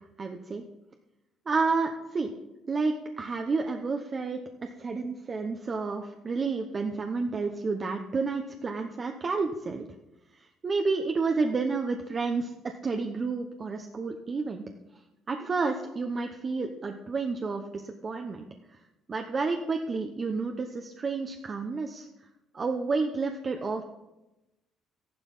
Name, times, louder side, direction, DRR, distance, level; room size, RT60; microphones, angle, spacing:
voice 1, 0.2-0.6 1.5-2.3 2.7-4.4 4.8-9.9 10.6-14.6 15.3-18.5 19.1-22.1 22.5-23.8, right 4 dB, 35° right, 4 dB, 1.0 m, -30 dB
13.0 x 11.0 x 5.5 m, 1.0 s
cardioid pair, 95°, 0 cm